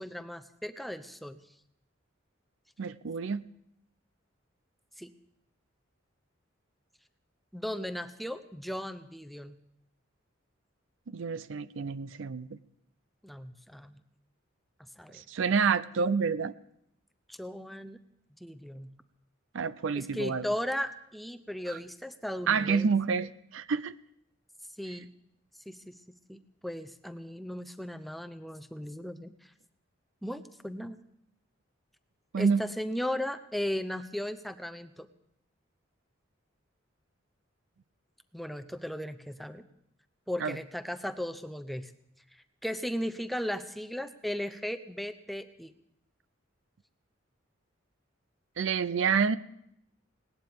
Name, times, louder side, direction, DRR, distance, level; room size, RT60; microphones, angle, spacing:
voice 1, 0.0-1.4 5.0-5.1 7.5-9.5 13.2-14.0 15.0-15.2 17.3-18.0 18.4-18.9 20.0-22.9 24.8-25.1 25.7-25.9 26.3-29.5 30.2-31.0 32.4-35.1 38.3-39.6 40.3-41.9 42.3-45.7, left 1 dB, ahead, 9 dB, 0.6 m, -36 dB
voice 2, 2.8-3.5 11.1-12.6 15.1-16.5 19.5-20.5 22.5-24.0 32.3-32.6 40.4-40.6 48.6-49.4, right 5 dB, 70° right, 17 dB, 0.5 m, -28 dB
19.5 x 18.5 x 3.6 m, 0.76 s
head